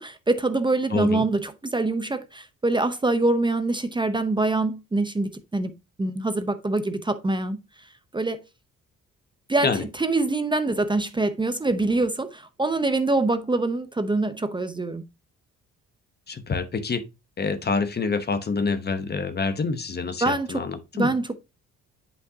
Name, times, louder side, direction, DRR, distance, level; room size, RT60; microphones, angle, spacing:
voice 1, 0.0-5.7 6.0-7.6 8.1-8.4 9.5-9.7 10.0-15.0 20.2-20.6 20.9-21.4, right 2 dB, 15° right, 0.7 m, -24 dB
voice 2, 0.9-1.2 9.6-9.8 16.3-17.0 17.4-21.1, left 4 dB, 35° left, 0.9 m, -27 dB
8.0 x 5.4 x 2.7 m
cardioid pair, 90°, 30 cm